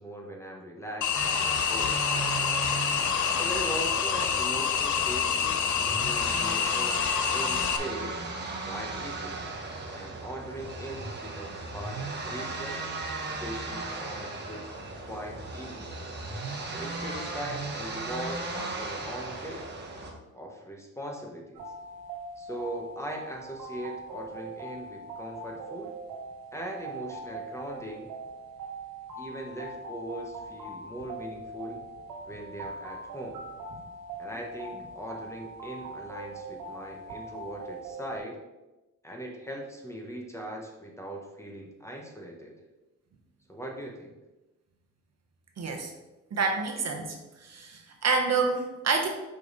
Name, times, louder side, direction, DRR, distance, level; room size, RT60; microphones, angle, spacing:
voice 1, 0.0-2.0 3.3-7.0 7.3-8.2 8.6-9.4 9.9-12.8 13.2-14.7 15.0-16.1 16.7-19.7 20.3-21.7 22.4-25.9 26.5-28.1 29.2-31.8 32.2-33.4 34.2-38.4 39.0-42.6 43.5-44.1, right 1 dB, 10° left, 0 dB, 1.1 m, -40 dB
sound 1, 1.0-7.8, left 8 dB, 60° left, 0.7 m, -27 dB
sound 2, 1.1-20.1, right 3 dB, 30° right, 1.3 m, -36 dB
sound 3, 21.5-38.2, right 2 dB, 85° right, 1.7 m, -41 dB
voice 2, 45.6-45.9 46.3-47.2 47.4-49.1, right 4 dB, 50° right, 2 dB, 1.1 m, -28 dB
5.2 x 4.7 x 4.0 m, 1.0 s
cardioid pair, 90°, 34 cm